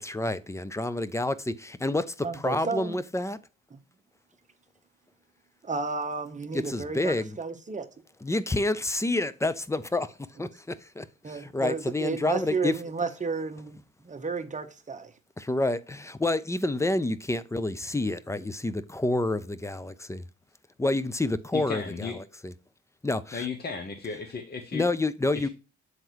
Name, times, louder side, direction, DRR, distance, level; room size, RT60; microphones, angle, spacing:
voice 1, 0.0-3.4 6.5-7.4 8.2-10.1 10.4-10.5 11.0-11.1 11.5-12.8 15.4-20.2 20.8-22.5 23.0-23.5 24.7-25.5, left 2 dB, 10° left, 0.6 m, -28 dB
voice 2, 2.2-3.0 3.7-3.8 5.6-7.9 11.2-13.8 14.0-15.1, right 4 dB, 25° right, 1.1 m, -32 dB
voice 3, 21.5-22.2 23.3-24.9 25.4-25.5, left 5 dB, 35° left, 1.0 m, -35 dB
7.9 x 3.8 x 4.6 m
cardioid pair, 90°, 30 cm